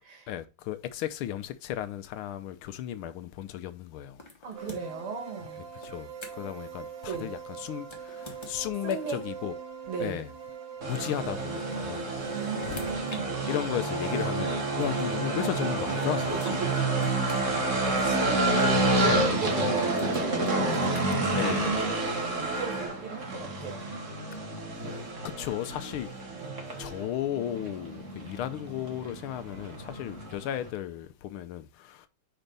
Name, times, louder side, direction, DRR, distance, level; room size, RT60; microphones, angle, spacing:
voice 1, 0.3-4.2 4.6-4.7 5.8-9.5 10.0-10.3 10.8-12.2 12.6-12.9 13.5-16.9 19.0-19.4 21.3-21.8 25.2-26.1 26.8-32.1, left 11 dB, 80° left, 1.5 m, -35 dB
sound 1, 4.2-5.1 5.8-6.6 7.8-9.2 10.5-10.6 11.8-13.2 14.2-14.3 15.9-16.0 16.4-18.2 19.6-21.1, left 2 dB, 15° left, 1.0 m, -46 dB
voice 2, 4.4-5.6 7.1-7.3 8.8-9.2 9.9-10.2 12.3-13.4 14.1-14.3 16.3-20.9 21.2-23.9 26.3-26.6, right 4 dB, 80° right, 2.7 m, -37 dB
sound 2, 4.5-22.9, right 6 dB, 55° right, 1.0 m, -42 dB
sound 3, 10.8-30.7, right 2 dB, 40° right, 1.6 m, -29 dB
5.0 x 4.5 x 5.2 m
omnidirectional pair, 2.4 m